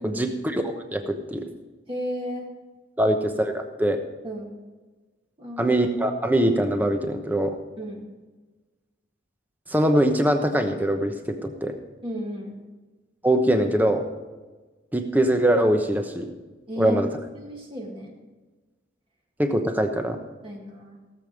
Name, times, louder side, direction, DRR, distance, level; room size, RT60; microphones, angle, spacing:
voice 1, 0.0-1.5 3.0-4.0 5.6-7.6 9.7-11.8 13.2-14.0 14.9-16.3 16.8-17.1 19.4-20.2, right 1 dB, 10° right, 5 dB, 0.9 m, -22 dB
voice 2, 1.9-2.5 4.2-4.5 5.4-5.7 7.8-8.0 12.0-12.6 16.7-17.0 17.3-18.2 20.4-21.0, equal, 25° right, -1 dB, 1.8 m, -33 dB
17.0 x 7.6 x 5.2 m, 1.3 s
head